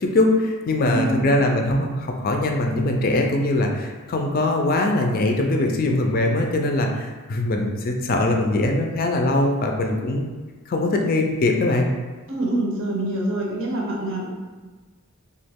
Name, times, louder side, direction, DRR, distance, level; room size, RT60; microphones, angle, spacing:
voice 1, 0.0-10.2 10.7-11.9, left 2 dB, 40° left, 2 dB, 0.4 m, -21 dB
voice 2, 0.9-1.3 12.3-14.3, right 1 dB, 60° right, -2 dB, 0.7 m, -25 dB
3.0 x 2.3 x 3.5 m, 1.4 s
head